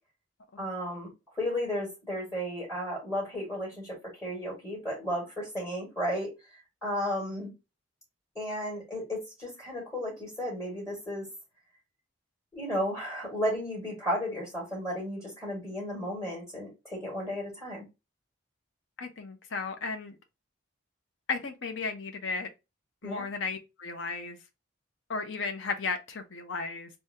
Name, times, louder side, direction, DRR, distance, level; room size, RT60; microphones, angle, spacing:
voice 1, 0.6-1.1 1.4-6.3 6.8-7.5 8.4-11.3 12.5-17.8 23.0-23.2, equal, 15° left, 2.0 m, -33 dB
voice 2, 19.0-20.2 21.3-22.5 23.0-24.4 25.1-26.9, left 4 dB, 60° left, 0.6 m, -34 dB
3.5 x 2.7 x 2.7 m
head